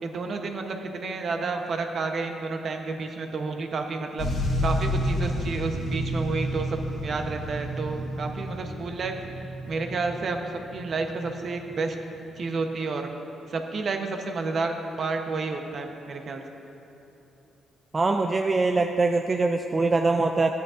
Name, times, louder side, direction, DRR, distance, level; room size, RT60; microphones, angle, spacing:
voice 1, 0.0-4.3 4.6-9.2 9.7-11.9 12.4-13.1 13.5-16.4, right 3 dB, 50° right, 4 dB, 0.8 m, -30 dB
sound 1, 4.2-11.7 12.4-12.5, equal, 65° left, 1.9 m, -30 dB
voice 2, 17.9-20.5, right 3 dB, 30° right, 5 dB, 0.3 m, -23 dB
12.5 x 9.3 x 2.5 m, 2.9 s
cardioid pair, 90°, 0 cm